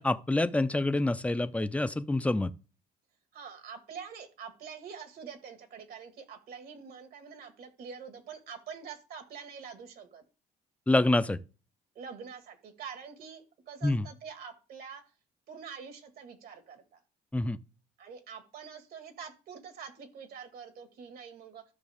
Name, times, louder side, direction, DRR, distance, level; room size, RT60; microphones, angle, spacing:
voice 1, 0.0-2.5 10.9-11.4 13.8-14.1 17.3-17.6, left 2 dB, 10° left, 0.6 m, -27 dB
voice 2, 3.3-10.2 12.0-15.0 15.5-17.0 18.0-21.6, right 6 dB, 65° right, 1.9 m, -45 dB
13.0 x 6.1 x 3.5 m
cardioid pair, 110°, 17 cm